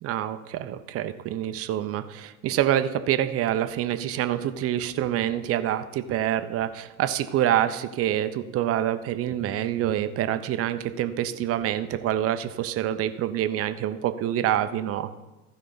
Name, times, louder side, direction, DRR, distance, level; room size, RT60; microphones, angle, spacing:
voice 1, 0.0-15.1, right 11 dB, 30° right, 11 dB, 0.7 m, -26 dB
15.0 x 5.3 x 3.9 m, 1.1 s
hypercardioid pair, 85°, 45 cm